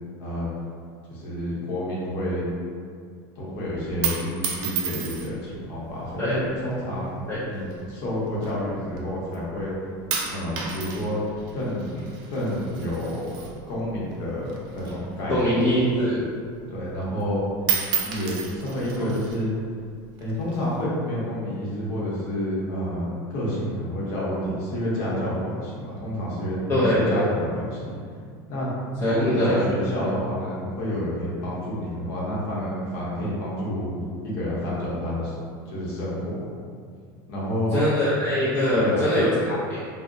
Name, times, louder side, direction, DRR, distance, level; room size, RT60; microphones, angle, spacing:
voice 1, 1.1-2.4 3.4-9.7 10.3-11.2 11.5-12.0 12.3-13.4 13.7-15.5 16.7-17.4 18.0-19.5 20.2-27.9 28.5-28.7 29.1-33.9 34.2-35.4 35.7-36.5 37.3-37.8 38.7-39.1, equal, 55° left, -6 dB, 0.8 m, -29 dB
sound 1, 3.8-5.5 6.3-6.8 7.6-9.0 9.3-9.7 10.1-14.2 14.4-16.1 16.5-16.6 16.9-17.3 17.6-19.4 20.2-20.8, right 6 dB, 40° right, 0.3 m, -32 dB
voice 2, 15.3-16.2 26.7-27.2 29.0-29.6 37.7-39.9, left 1 dB, 20° left, -11 dB, 0.4 m, -22 dB
2.7 x 2.0 x 2.5 m, 2.1 s
supercardioid pair, 165°, 12 cm